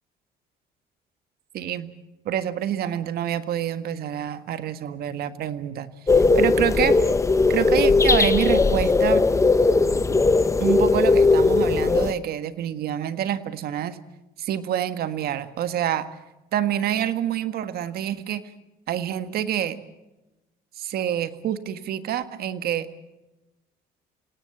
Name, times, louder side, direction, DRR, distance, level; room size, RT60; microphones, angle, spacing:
voice 1, 1.5-1.9 2.2-7.0 7.5-9.2 10.6-14.0 14.4-16.1 16.5-18.4 18.9-19.8 20.7-22.9, right 10 dB, 65° right, 11 dB, 1.7 m, -27 dB
sound 1, 6.1-12.1, left 3 dB, 15° left, 1.1 m, -18 dB
28.0 x 18.0 x 7.2 m, 1.0 s
cardioid pair, 110°, 17 cm